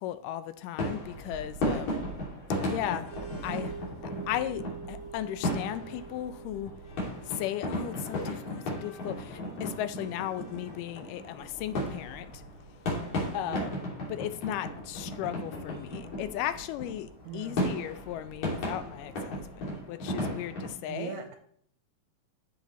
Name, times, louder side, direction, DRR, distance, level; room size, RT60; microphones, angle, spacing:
voice 1, 0.0-1.9 2.7-3.1 3.4-3.8 4.0-6.8 7.3-12.4 13.3-13.7 14.1-21.2, left 12 dB, 85° left, 2.2 m, -36 dB
sound 1, 0.8-20.7, left 1 dB, 65° left, 3.8 m, -35 dB
sound 2, 1.0-19.8, right 2 dB, 45° left, 2.4 m, -50 dB
voice 2, 1.7-2.3 3.2-3.7 13.4-13.8 17.2-17.8 20.9-21.4, right 7 dB, 80° right, 1.9 m, -42 dB
sound 3, 3.1-12.0, right 6 dB, 25° right, 1.0 m, -48 dB
14.0 x 5.4 x 3.1 m
omnidirectional pair, 3.7 m